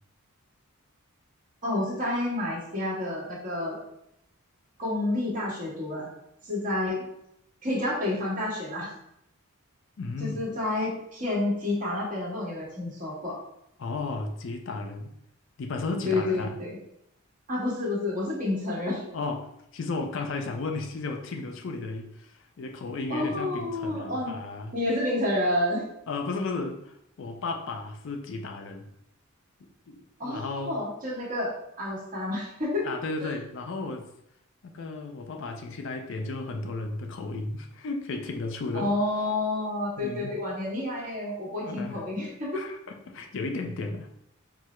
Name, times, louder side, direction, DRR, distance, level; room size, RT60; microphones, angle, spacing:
voice 1, 1.6-3.8 4.8-6.1 6.4-7.1 7.6-8.9 10.2-13.3 16.0-16.8 17.5-19.0 23.1-24.3 24.7-25.8 30.2-32.8 33.2-33.3 38.7-42.6, left 2 dB, 35° right, -5 dB, 1.4 m, -29 dB
voice 2, 10.0-10.4 13.8-15.1 15.6-16.5 19.1-19.4 19.7-24.7 26.1-28.9 29.9-30.8 32.8-34.1 34.6-38.9 40.0-40.3 41.6-42.0 42.5-44.1, left 3 dB, 55° left, 4 dB, 0.4 m, -34 dB
4.6 x 2.0 x 4.3 m, 0.78 s
head